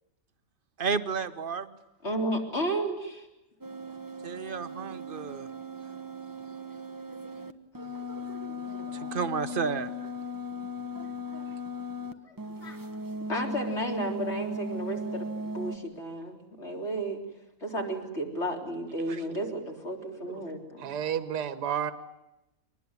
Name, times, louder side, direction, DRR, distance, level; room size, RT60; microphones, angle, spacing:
voice 1, 0.8-1.8 4.2-5.5 8.9-9.9, right 5 dB, 35° right, 11 dB, 1.1 m, -31 dB
voice 2, 2.0-3.3 11.3-11.5 12.2-12.8 13.3-17.2 17.6-20.9, right 1 dB, 35° left, 2 dB, 4.1 m, -33 dB
sound 1, 3.6-12.1 12.4-15.8, left 1 dB, 15° right, 0.8 m, -37 dB
voice 3, 19.4-19.9 20.2-20.5 20.8-21.9, right 9 dB, 60° right, 11 dB, 1.9 m, -33 dB
25.5 x 20.0 x 9.7 m, 0.94 s
omnidirectional pair, 2.0 m